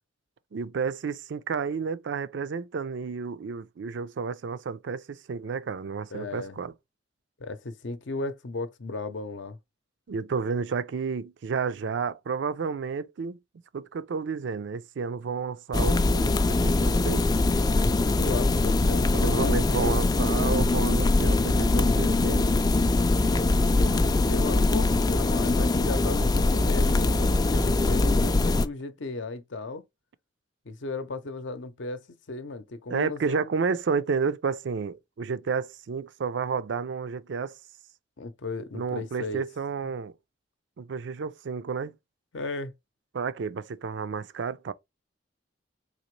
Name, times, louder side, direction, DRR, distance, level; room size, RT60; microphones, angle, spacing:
voice 1, 0.5-6.7 10.1-13.4 13.7-17.3 19.1-22.6 32.9-37.5 38.7-40.1 40.8-41.9 43.1-44.7, right 5 dB, 65° right, 0.4 m, -31 dB
voice 2, 6.1-6.6 7.4-9.6 18.1-20.1 23.7-29.8 30.6-32.0 32.3-33.5 38.2-39.4 42.3-42.7, left 3 dB, 70° left, 0.7 m, -35 dB
sound 1, 15.7-28.7, left 2 dB, 20° left, 0.3 m, -22 dB
4.0 x 2.9 x 3.1 m
head